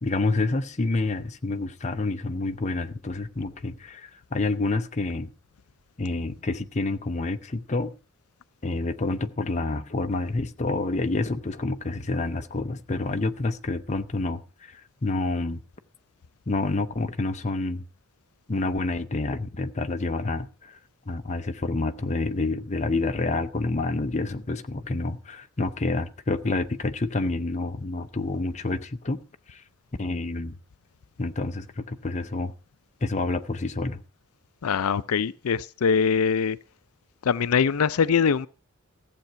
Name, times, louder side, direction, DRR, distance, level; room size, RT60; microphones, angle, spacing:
voice 1, 0.0-5.3 6.0-7.9 8.6-15.6 16.5-17.8 18.5-20.8 21.1-29.2 29.5-29.6 30.0-30.6 31.2-32.5 33.0-34.0, left 2 dB, 30° left, 0.7 m, -28 dB
voice 2, 34.6-36.6 37.2-38.5, left 6 dB, 80° left, 0.5 m, -23 dB
14.5 x 7.7 x 5.7 m
head